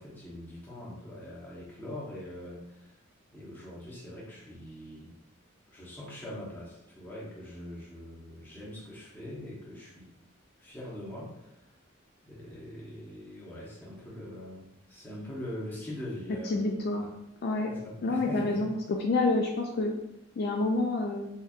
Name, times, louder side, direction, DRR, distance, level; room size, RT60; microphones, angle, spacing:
voice 1, 0.0-3.0 3.3-5.1 5.7-10.1 10.6-11.6 12.3-17.1 17.7-18.7, left 1 dB, 10° left, -6 dB, 0.9 m, -43 dB
voice 2, 16.4-17.0 17.4-17.7 18.0-18.7 19.0-19.9 20.4-21.3, left 2 dB, 50° left, 1 dB, 0.3 m, -28 dB
4.1 x 2.6 x 2.4 m, 0.83 s
head